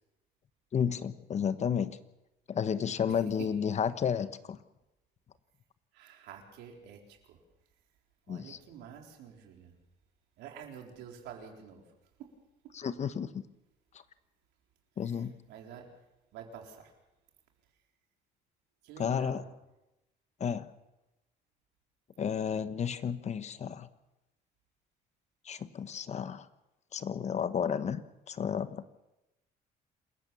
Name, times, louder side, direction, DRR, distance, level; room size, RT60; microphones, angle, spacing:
voice 1, 0.7-2.0 2.5-4.6 8.3-8.6 12.7-13.4 15.0-15.3 19.0-19.4 20.4-20.7 22.2-23.9 25.4-26.5 26.9-28.0 28.3-28.8, left 7 dB, 40° left, 13 dB, 1.2 m, -32 dB
voice 2, 3.1-3.5 5.9-7.4 8.3-9.7 10.4-11.9 12.2-12.3 15.0-16.0 16.3-16.9 18.8-19.5 22.5-22.7, right 8 dB, 85° right, 2 dB, 4.1 m, -48 dB
27.5 x 15.0 x 7.0 m, 0.96 s
cardioid pair, 110°, 17 cm